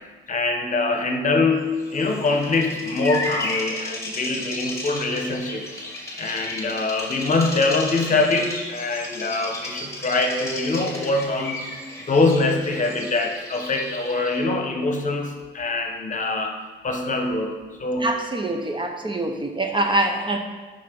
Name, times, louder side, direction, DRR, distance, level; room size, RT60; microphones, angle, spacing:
voice 1, 0.3-5.7 6.2-11.7 12.1-16.5 16.8-17.5 17.8-18.1, left 3 dB, 40° left, 4 dB, 1.2 m, -23 dB
Bird vocalization bird call bird song, 1.8-14.5, left 1 dB, 15° left, 2.0 m, -34 dB
voice 2, 18.0-20.4, right 2 dB, 25° right, 4 dB, 0.8 m, -24 dB
6.5 x 5.6 x 5.2 m, 1.3 s
cardioid pair, 90°, 20 cm